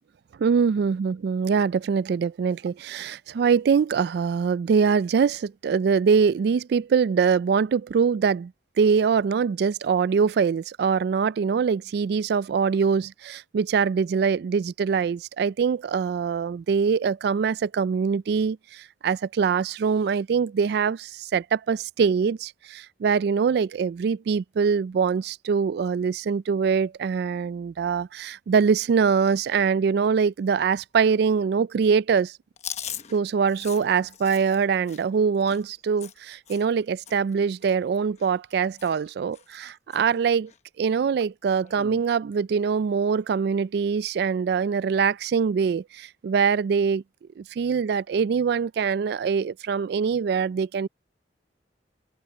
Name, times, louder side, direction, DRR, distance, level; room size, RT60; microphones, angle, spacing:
voice 1, 0.4-8.5 8.8-32.3 33.1-40.5 40.8-47.0 47.4-50.9, right 6 dB, 60° right, 0.3 m, -23 dB
Chewing mastication, 32.6-36.8 37.1-37.3 37.6-38.5 38.8-39.1 39.3-40.0 40.5-40.6 41.6-42.0, left 9 dB, 40° left, 1.0 m, -40 dB
head